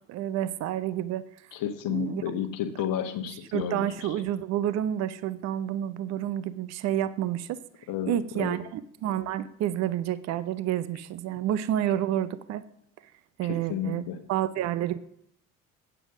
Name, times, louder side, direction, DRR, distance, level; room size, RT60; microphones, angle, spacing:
voice 1, 0.1-1.2 1.9-2.2 3.5-7.6 8.1-12.6 13.4-14.0 14.3-15.0, right 11 dB, 40° right, 15 dB, 0.6 m, -29 dB
voice 2, 1.5-4.1 7.9-8.6 13.5-14.2, left 9 dB, 50° left, 8 dB, 1.3 m, -32 dB
8.9 x 6.9 x 6.0 m, 0.71 s
figure-of-eight pair, 55°, 44 cm